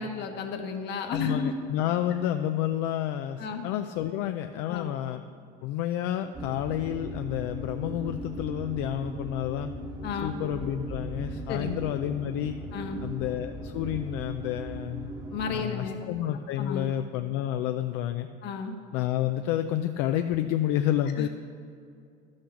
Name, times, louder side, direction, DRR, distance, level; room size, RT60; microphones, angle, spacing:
voice 1, 0.0-1.5 3.4-3.7 4.7-4.9 10.0-10.4 11.5-11.9 12.7-13.0 15.3-16.1 16.6-16.9 18.4-18.7 21.2-21.3, left 5 dB, 60° left, 4 dB, 1.3 m, -33 dB
voice 2, 1.0-5.2 5.6-9.7 10.2-12.6 13.0-15.1 15.5-18.3 18.9-21.3, left 11 dB, 80° left, 7 dB, 0.4 m, -30 dB
sound 1, 6.3-15.5, right 1 dB, 20° right, 1.1 m, -38 dB
11.5 x 6.4 x 5.8 m, 2.4 s
supercardioid pair, 100°, 20 cm